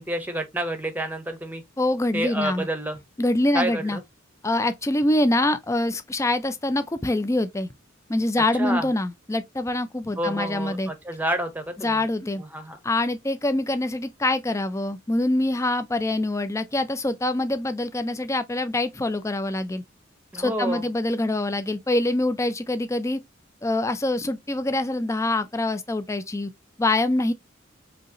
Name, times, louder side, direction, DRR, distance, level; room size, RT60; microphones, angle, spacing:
voice 1, 0.0-1.6 2.1-3.0 3.5-4.0 8.5-8.9 10.2-12.0 12.4-12.8 20.3-20.9, right 1 dB, 10° right, 0.8 m, -29 dB
voice 2, 1.8-2.7 3.2-4.0 4.4-7.7 8.1-10.9 11.8-12.4 12.8-19.8 20.4-23.2 23.6-26.5 26.8-27.3, left 2 dB, 15° left, 0.5 m, -25 dB
5.0 x 2.9 x 2.8 m
head